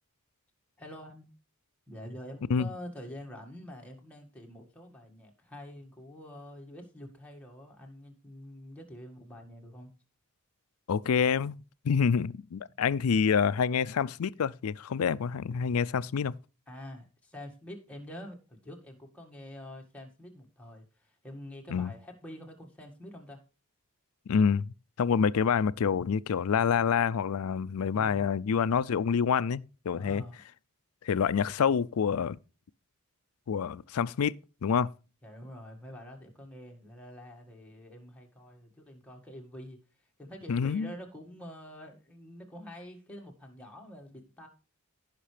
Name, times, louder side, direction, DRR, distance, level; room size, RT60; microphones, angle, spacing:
voice 1, 0.8-1.3 1.9-9.9 16.7-23.4 29.9-30.4 35.2-44.5, left 1 dB, 5° left, 1.8 m, -47 dB
voice 2, 10.9-11.6 11.8-16.3 21.7-21.9 24.3-30.2 31.0-32.4 33.5-34.9 40.5-40.9, left 6 dB, 75° left, 0.4 m, -27 dB
15.5 x 5.9 x 3.3 m
head